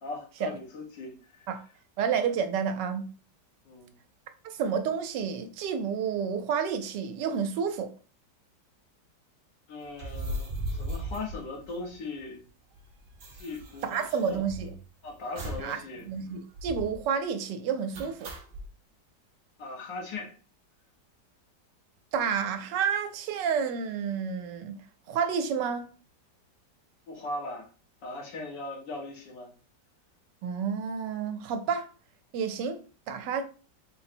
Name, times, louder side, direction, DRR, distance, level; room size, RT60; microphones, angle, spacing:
voice 1, 0.0-1.5 3.7-3.9 9.7-12.4 13.3-14.4 15.0-16.1 19.6-20.3 27.1-27.7 28.0-29.5, left 2 dB, 75° left, 1.8 m, -39 dB
voice 2, 2.0-3.1 4.4-7.9 13.8-14.7 15.6-15.8 16.0-18.3 22.1-24.8 25.1-25.9 30.4-31.9 32.3-32.8 33.1-33.4, right 7 dB, 80° right, 1.2 m, -30 dB
sound 1, 9.9-12.2 12.5-12.6 12.7-14.9 15.4-15.8 16.1-16.2 16.5-17.0 17.9-18.7, right 1 dB, 55° right, 0.5 m, -37 dB
3.9 x 2.0 x 4.2 m
omnidirectional pair, 1.9 m